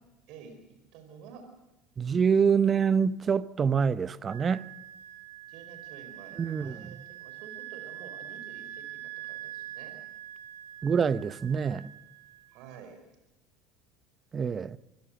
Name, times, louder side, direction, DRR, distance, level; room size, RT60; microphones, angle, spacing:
voice 1, 0.9-1.4 5.5-10.0 12.5-13.0, right 6 dB, 60° right, 4.6 m, -50 dB
voice 2, 2.0-4.6 6.4-6.8 10.8-11.9 14.3-14.8, right 6 dB, 30° right, 0.8 m, -26 dB
Wind instrument woodwind instrument, 4.2-12.5, right 13 dB, 75° right, 1.8 m, -44 dB
25.0 x 16.0 x 7.8 m
hypercardioid pair, 75°, 0 cm